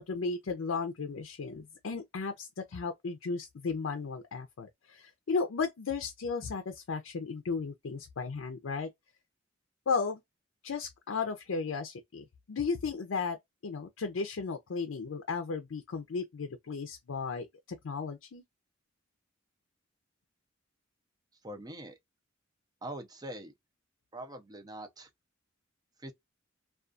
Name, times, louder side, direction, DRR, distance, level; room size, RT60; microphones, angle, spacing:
voice 1, 0.0-8.9 9.9-10.2 10.6-13.4 13.6-17.5 17.8-18.4, left 4 dB, 85° left, 0.5 m, -35 dB
voice 2, 21.4-21.9 22.8-23.5 24.1-25.1 26.0-26.1, right 1 dB, 20° right, 0.6 m, -43 dB
2.4 x 2.3 x 2.4 m
head